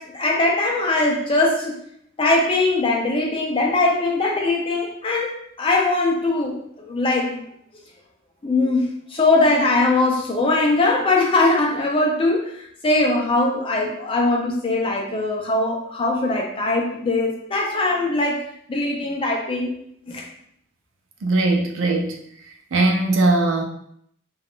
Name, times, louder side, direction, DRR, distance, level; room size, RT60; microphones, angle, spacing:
voice 1, 0.0-1.7 2.2-7.4 8.4-19.7 20.1-20.3, left 2 dB, 25° left, 0 dB, 0.4 m, -21 dB
voice 2, 21.2-22.2 22.7-23.6, right 2 dB, 65° right, 2 dB, 0.5 m, -19 dB
2.4 x 2.3 x 3.5 m, 0.70 s
head